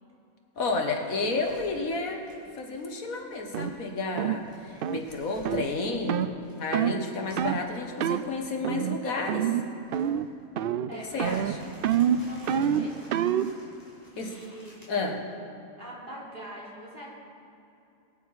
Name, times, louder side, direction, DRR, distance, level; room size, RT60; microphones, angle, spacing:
voice 1, 0.6-2.2 2.6-6.3 6.6-9.6 11.1-11.6 14.2-14.4 14.9-15.2, left 3 dB, 80° left, 3 dB, 1.8 m, -31 dB
sound 1, 0.6-7.6 8.0-8.3 9.8-10.4 10.9-14.9, equal, 15° left, 3.9 m, -53 dB
sound 2, 3.5-3.7 4.2-4.4 4.8-5.0 5.4-5.7 6.1-6.3 6.7-7.0 7.4-7.6 8.0-8.2 8.6-9.0 9.3-9.6 9.9-10.3 10.6-10.9 11.2-13.5, right 9 dB, 75° right, 0.5 m, -26 dB
voice 2, 10.9-11.5 12.2-13.1 14.2-14.9 15.8-17.1, right 1 dB, 35° right, -6 dB, 3.7 m, -43 dB
22.0 x 9.3 x 4.7 m, 2.7 s
omnidirectional pair, 1.5 m